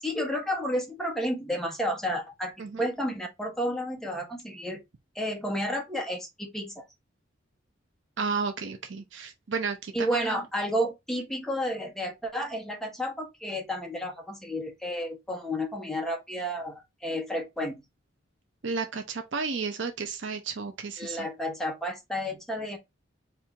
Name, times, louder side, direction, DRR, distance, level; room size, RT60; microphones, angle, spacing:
voice 1, 0.0-4.8 5.1-6.8 9.9-17.7 21.0-22.8, equal, ahead, 1.1 m, -31 dB
voice 2, 8.2-10.4 18.6-21.3, right 5 dB, 70° right, 0.7 m, -32 dB
4.4 x 2.7 x 3.5 m
head